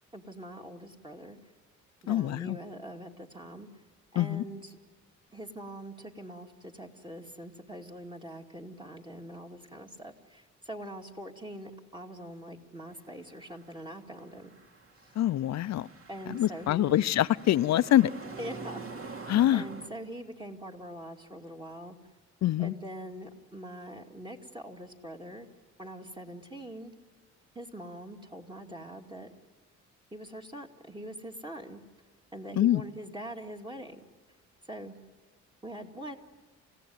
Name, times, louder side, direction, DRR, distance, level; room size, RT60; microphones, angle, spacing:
voice 1, 0.1-1.4 2.0-3.7 4.1-4.7 5.3-14.5 15.0-15.1 16.1-17.1 18.4-22.0 22.6-25.5 25.8-26.9 27.5-29.3 30.1-31.8 32.3-34.0 34.6-34.9 35.6-36.2, right 1 dB, 15° right, 2 dB, 2.3 m, -43 dB
voice 2, 2.1-2.6 4.2-4.4 15.2-15.9 16.3-18.1 19.3-19.6 22.4-22.7 32.5-32.8, left 13 dB, 60° left, 16 dB, 0.6 m, -25 dB
sound 1, 13.0-19.9, right 3 dB, 45° right, 2.7 m, -46 dB
29.0 x 16.0 x 9.5 m, 1.4 s
cardioid pair, 90°, 30 cm